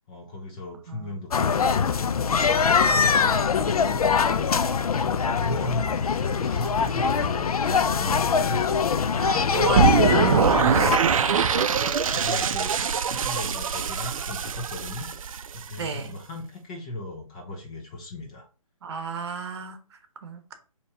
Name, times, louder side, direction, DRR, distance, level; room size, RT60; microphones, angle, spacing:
voice 1, 0.1-2.1 2.6-4.1 4.8-8.7 9.2-11.3 12.1-15.1 15.5-18.5, left 1 dB, 10° left, 0 dB, 0.3 m, -37 dB
sound 1, 1.3-11.0, left 5 dB, 85° left, 0.4 m, -23 dB
voice 2, 9.1-10.6 11.2-11.8 15.8-16.2 18.8-20.5, right 5 dB, 50° right, 8 dB, 0.9 m, -34 dB
sound 2, 9.7-15.8, right 7 dB, 65° right, 0.4 m, -23 dB
4.0 x 2.9 x 3.4 m, 0.37 s
hypercardioid pair, 150°, 18 cm